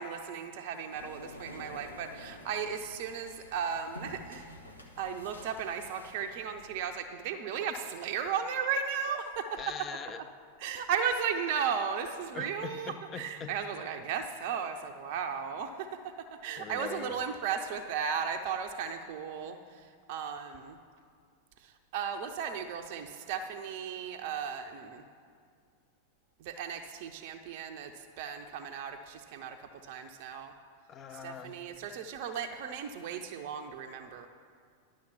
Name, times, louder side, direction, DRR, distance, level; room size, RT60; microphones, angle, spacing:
voice 1, 0.0-4.5 5.0-9.6 10.6-15.9 16.4-20.8 21.6-25.0 26.4-30.5 31.1-34.3, right 7 dB, 50° right, 5 dB, 0.6 m, -35 dB
sound 1, 0.9-6.8, left 1 dB, 80° left, 1.0 m, -50 dB
voice 2, 9.6-10.2 12.3-13.5 16.6-17.2 30.9-31.5, left 6 dB, 25° left, 8 dB, 0.6 m, -42 dB
11.0 x 6.4 x 7.0 m, 2.2 s
figure-of-eight pair, 90°, 0 cm